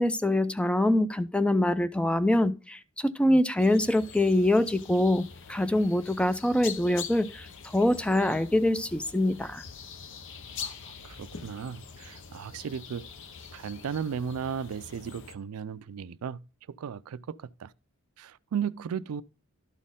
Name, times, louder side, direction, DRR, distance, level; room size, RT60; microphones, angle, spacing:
voice 1, 0.0-7.5 7.7-9.6, left 1 dB, 5° left, 0.4 m, -24 dB
sound 1, 3.6-15.4, left 6 dB, 60° left, 0.7 m, -44 dB
voice 2, 10.6-13.1 13.5-16.4 16.8-17.7 18.2-19.2, right 7 dB, 80° right, 0.4 m, -35 dB
12.0 x 4.2 x 3.6 m
head